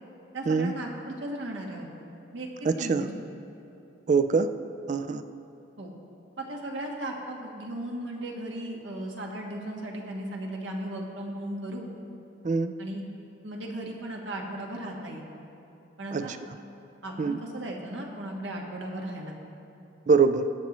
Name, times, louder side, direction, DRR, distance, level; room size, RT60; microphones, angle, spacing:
voice 1, 0.3-1.9 2.3-2.5 2.8-3.3 5.8-5.9 6.4-11.9 12.8-13.0 13.4-15.2 16.0-16.3 17.0-19.4, right 1 dB, 75° right, 0 dB, 1.4 m, -36 dB
voice 2, 2.7-3.1 4.1-4.5 4.9-5.2 12.4-12.7 16.1-16.2 17.2-17.4 20.1-20.5, right 5 dB, 40° right, 10 dB, 0.3 m, -23 dB
21.0 x 7.3 x 3.0 m, 2.8 s
head